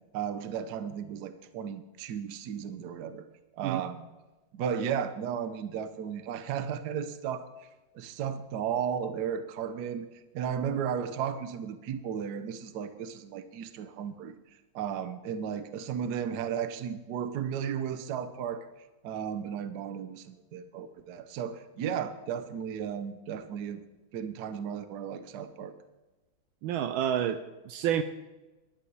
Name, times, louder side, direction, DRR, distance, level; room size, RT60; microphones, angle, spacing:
voice 1, 0.1-3.3 3.6-4.1 4.5-7.7 7.9-10.1 10.3-14.3 14.7-18.7 19.0-23.8 24.1-25.7, right 8 dB, 60° right, 11 dB, 1.2 m, -34 dB
voice 2, 26.6-28.0, right 10 dB, 80° right, 11 dB, 1.3 m, -29 dB
11.0 x 11.0 x 4.7 m, 1.1 s
omnidirectional pair, 2.3 m